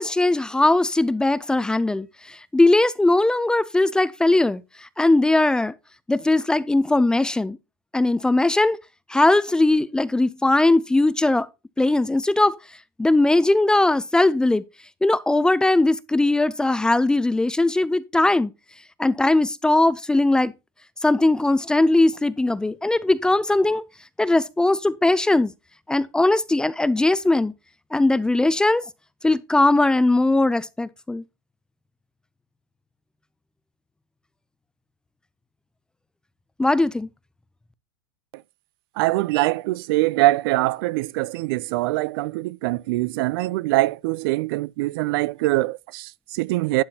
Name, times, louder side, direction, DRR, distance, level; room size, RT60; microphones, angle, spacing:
voice 1, 0.0-5.7 6.1-7.6 7.9-8.8 9.1-11.5 11.8-12.6 13.0-14.6 15.0-18.5 19.0-20.5 21.0-23.8 24.2-25.5 25.9-27.5 27.9-28.8 29.2-31.2 36.6-37.1, left 2 dB, 5° left, 0.4 m, -19 dB
voice 2, 39.0-46.8, right 19 dB, 60° right, 0.4 m, -23 dB
11.5 x 8.8 x 2.8 m
supercardioid pair, 135°, 14 cm